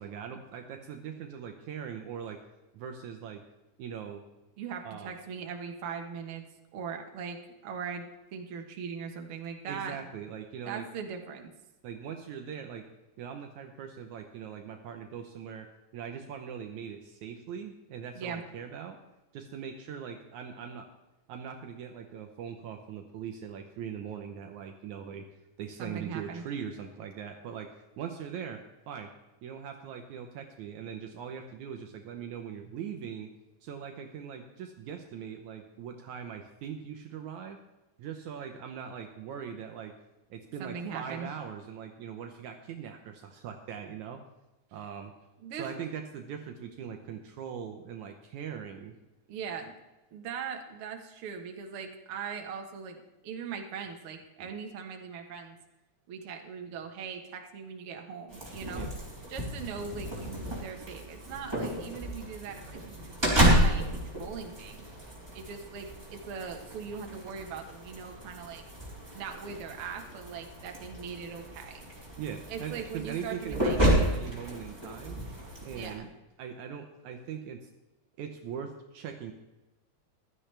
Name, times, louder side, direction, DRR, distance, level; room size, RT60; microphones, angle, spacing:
voice 1, 0.0-2.4 2.7-3.4 3.8-4.2 4.9-5.1 9.7-10.9 11.8-12.8 13.2-19.0 19.3-20.9 21.3-25.3 25.6-29.1 29.4-33.3 33.6-37.6 38.0-39.9 40.3-44.2 44.7-45.1 45.5-48.9 54.4-54.5 58.7-58.9 72.2-75.2 75.6-76.1 76.4-77.7 78.2-79.3, right 7 dB, 70° right, 4 dB, 2.1 m, -41 dB
voice 2, 4.6-6.4 6.7-7.4 7.6-10.0 10.6-11.5 18.2-18.4 25.8-26.4 40.6-41.3 45.4-45.8 49.3-49.7 50.1-53.0 53.2-55.6 56.1-58.9 59.3-64.8 65.3-68.6 69.1-71.8 72.5-73.8 75.7-76.1, right 6 dB, 55° right, 3 dB, 1.9 m, -40 dB
sound 1, 58.3-75.9, right 1 dB, 10° right, 3.3 m, -31 dB
15.5 x 12.5 x 3.3 m, 1.0 s
omnidirectional pair, 3.7 m